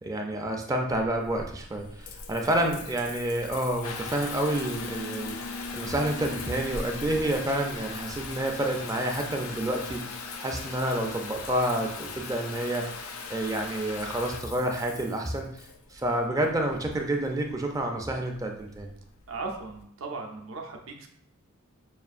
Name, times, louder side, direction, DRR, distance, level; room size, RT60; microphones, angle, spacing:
voice 1, 0.0-5.4 5.7-10.0 10.4-12.9 13.3-15.6 15.9-18.9, right 1 dB, 15° right, 2 dB, 0.3 m, -29 dB
Water tap faucet / Bathtub (filling or washing) / Trickle dribble, 0.9-19.8, left 4 dB, 75° left, 0.5 m, -39 dB
voice 2, 19.3-21.1, right 3 dB, 65° right, 2 dB, 0.6 m, -37 dB
5.6 x 2.4 x 2.4 m, 0.69 s
head